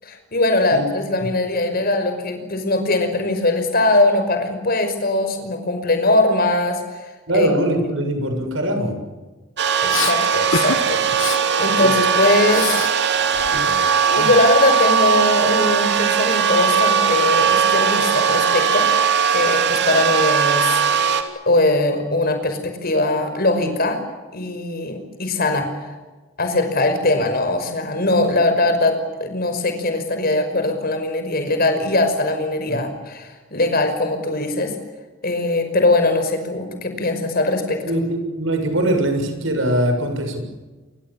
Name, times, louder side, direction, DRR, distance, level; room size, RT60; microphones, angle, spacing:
voice 1, 0.0-7.5 9.8-11.0 11.6-12.8 14.1-21.1 21.5-24.0 24.3-25.7 26.4-34.7 35.2-37.8, left 2 dB, 50° left, 7 dB, 5.6 m, -21 dB
voice 2, 7.3-9.0 32.7-32.8 37.9-40.4, right 1 dB, 75° right, 5 dB, 7.1 m, -21 dB
sound 1, 9.6-21.2, right 7 dB, 60° right, 3.1 m, -19 dB
Respiratory sounds, 9.9-10.2 10.5-10.8 11.1-11.4 11.8-12.9 13.2-14.6, left 4 dB, 80° left, 1.9 m, -27 dB
28.5 x 24.0 x 7.3 m, 1.2 s
head